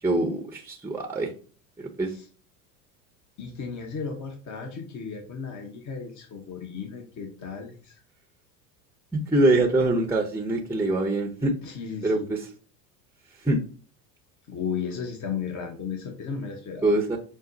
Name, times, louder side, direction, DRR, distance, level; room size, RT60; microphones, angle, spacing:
voice 1, 0.0-1.3 1.8-2.1 9.1-11.5 12.0-12.5 13.4-13.6 16.8-17.2, right 2 dB, 5° right, 2 dB, 0.8 m, -24 dB
voice 2, 3.4-8.0 11.6-12.3 14.5-16.9, left 6 dB, 35° left, 3 dB, 1.1 m, -35 dB
6.3 x 2.1 x 3.9 m, 0.39 s
hypercardioid pair, 85°, 50 cm